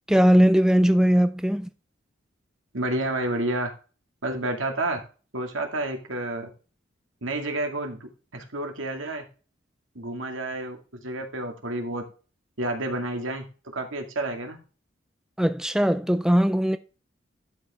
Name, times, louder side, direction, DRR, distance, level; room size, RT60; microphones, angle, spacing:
voice 1, 0.1-1.7 15.4-16.8, equal, 5° right, 0.3 m, -19 dB
voice 2, 2.7-3.7 4.2-5.0 5.3-6.5 7.2-9.3 10.0-10.8 11.0-12.0 12.6-14.6, right 1 dB, 80° right, 2.2 m, -30 dB
11.5 x 5.3 x 3.5 m
head